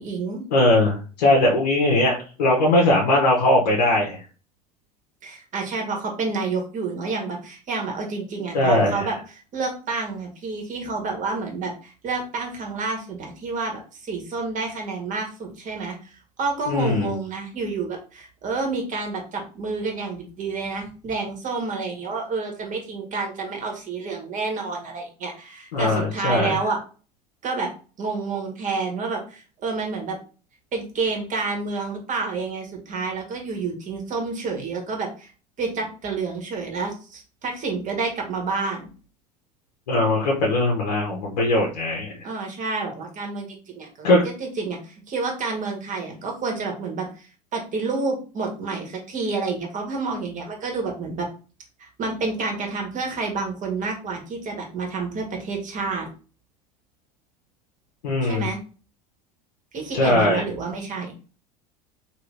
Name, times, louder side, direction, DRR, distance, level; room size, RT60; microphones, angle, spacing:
voice 1, 0.0-0.5 5.2-26.8 27.4-27.7 28.0-30.2 30.7-35.3 35.6-38.9 42.2-44.1 44.4-47.1 47.5-51.3 51.8-56.1 58.2-58.6 59.7-61.1, right 4 dB, 40° right, 2 dB, 1.5 m, -29 dB
voice 2, 0.5-4.2 8.5-9.1 16.7-17.1 25.7-26.6 39.9-42.2 44.0-44.2 58.0-58.5 59.9-60.4, left 1 dB, 85° left, -2 dB, 1.0 m, -20 dB
3.1 x 3.0 x 3.2 m, 0.36 s
hypercardioid pair, 90°, 21 cm